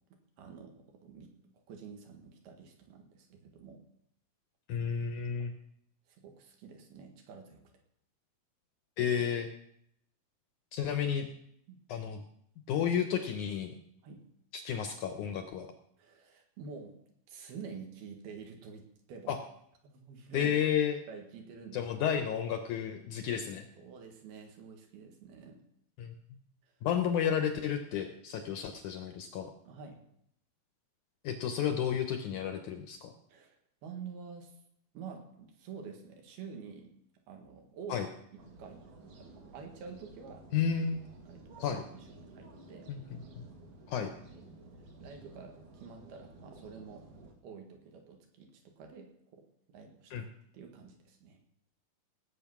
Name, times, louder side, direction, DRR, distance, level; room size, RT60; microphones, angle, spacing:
voice 1, 0.4-1.3 1.7-3.8 6.1-7.6 11.7-11.8 14.0-14.2 16.0-16.9 17.3-19.4 19.8-20.5 21.1-21.8 23.8-25.6 29.7-30.0 33.3-33.6 33.8-34.5 34.9-36.9 37.3-38.0 38.3-40.4 41.3-42.9 44.3-44.4 45.0-49.4 49.7-50.3 50.5-51.4, right 5 dB, 85° right, 3 dB, 3.9 m, -48 dB
voice 2, 4.7-5.5 9.0-9.5 10.7-11.3 11.9-12.2 12.7-13.7 14.5-15.7 19.3-19.4 20.3-21.0 21.7-23.7 26.0-26.1 26.8-29.5 31.2-33.1 37.9-38.1 40.5-41.0 41.6-41.8 42.9-43.0 43.4-43.5 43.9-44.1 50.1-50.3, left 8 dB, 75° left, 7 dB, 1.9 m, -32 dB
sound 1, 38.4-47.3, right 2 dB, 60° right, 3.4 m, -53 dB
17.5 x 8.0 x 6.0 m, 0.72 s
omnidirectional pair, 4.3 m